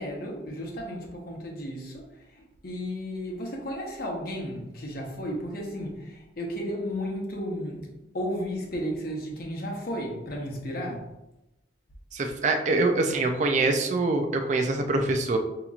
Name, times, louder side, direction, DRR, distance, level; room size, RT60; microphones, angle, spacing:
voice 1, 0.0-11.1, equal, 50° left, -1 dB, 0.8 m, -34 dB
voice 2, 12.1-15.4, right 2 dB, 35° right, 5 dB, 0.3 m, -24 dB
5.2 x 2.9 x 2.4 m, 0.96 s
head